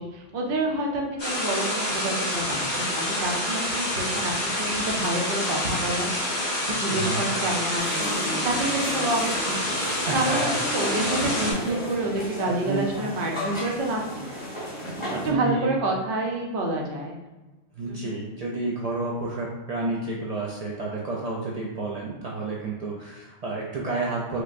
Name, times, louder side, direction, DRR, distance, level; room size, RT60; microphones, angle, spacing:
voice 1, 0.0-9.8 10.1-10.4 10.7-14.8 15.2-17.2 17.8-18.2, right 2 dB, 55° right, 0 dB, 0.7 m, -29 dB
sound 1, 1.2-11.5, left 1 dB, 50° left, 1.2 m, -27 dB
voice 2, 6.9-7.2 10.1-10.5 12.5-12.9 15.1-15.7 17.7-24.4, right 2 dB, 85° right, -3 dB, 0.3 m, -30 dB
sound 2, 7.8-15.3, equal, 25° left, 1.4 m, -33 dB
4.6 x 2.1 x 2.5 m, 1.1 s
omnidirectional pair, 1.2 m